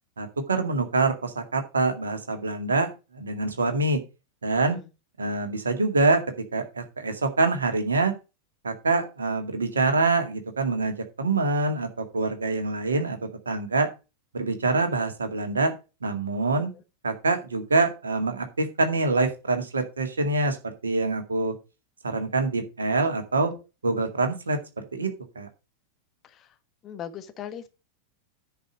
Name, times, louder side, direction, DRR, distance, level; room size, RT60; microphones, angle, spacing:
voice 1, 0.2-2.9 3.1-4.0 4.4-4.8 5.2-6.2 6.5-8.1 8.6-13.2 13.5-13.9 14.3-15.7 16.0-16.7 17.0-21.5 22.0-23.5 23.8-25.1 25.4-25.5, right 3 dB, 75° right, 6 dB, 2.0 m, -25 dB
voice 2, 26.8-27.7, left 9 dB, 30° left, 9 dB, 1.3 m, -39 dB
10.0 x 5.0 x 6.4 m, 0.29 s
figure-of-eight pair, 90°, 0 cm